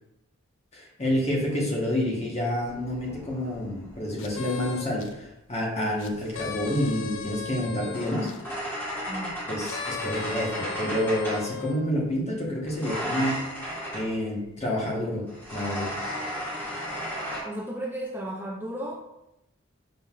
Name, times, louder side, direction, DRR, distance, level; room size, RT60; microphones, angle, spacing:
voice 1, 0.7-8.3 9.5-13.4 13.9-15.9, left 1 dB, 30° left, -2 dB, 1.1 m, -28 dB
sound 1, 2.7-4.8 6.0-11.5 12.7-14.1 15.3-17.4, equal, 10° left, 1.7 m, -35 dB
sound 2, 4.2-5.1 6.0-8.4 9.6-11.8, left 5 dB, 65° left, 0.4 m, -37 dB
voice 2, 9.1-9.4 17.4-19.1, right 1 dB, 10° right, -2 dB, 0.4 m, -34 dB
5.5 x 3.9 x 2.4 m, 0.87 s
head